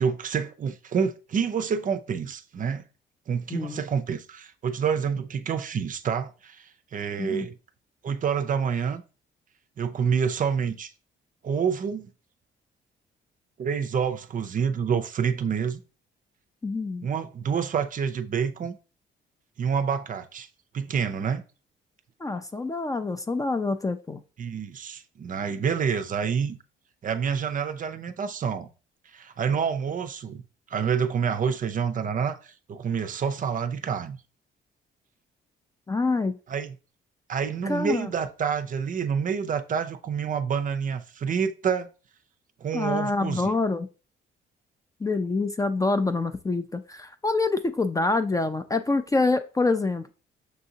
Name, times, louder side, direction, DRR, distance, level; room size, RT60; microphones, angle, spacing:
voice 1, 0.0-2.8 3.3-7.5 8.0-9.0 9.8-10.9 11.4-12.1 13.6-15.8 17.0-18.8 19.6-20.5 20.7-21.4 24.4-26.6 27.0-28.7 29.1-30.4 30.7-34.2 36.5-36.8 37.3-41.9 42.6-43.5, right 6 dB, 40° right, 0.5 m, -28 dB
voice 2, 16.6-17.1 22.2-24.2 35.9-36.4 37.6-38.1 42.7-43.9 45.0-50.1, left 3 dB, 15° left, 0.4 m, -26 dB
6.4 x 2.6 x 2.7 m
cardioid pair, 90°, 20 cm